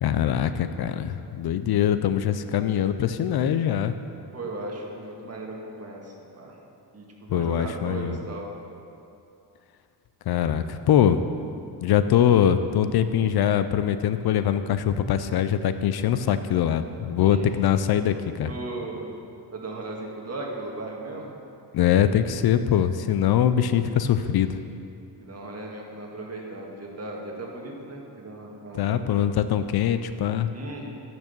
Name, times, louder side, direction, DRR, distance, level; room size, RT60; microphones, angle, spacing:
voice 1, 0.0-3.9 7.3-8.2 10.3-11.2 11.8-18.5 21.7-24.6 28.8-30.5, left 9 dB, 65° left, 11 dB, 0.5 m, -23 dB
voice 2, 4.3-6.6 6.9-8.5 17.3-17.4 18.5-19.1 19.5-21.3 23.9-24.3 25.2-29.0 30.5-30.9, right 2 dB, 35° right, -1 dB, 1.7 m, -37 dB
9.0 x 6.2 x 6.8 m, 2.6 s
cardioid pair, 105°, 42 cm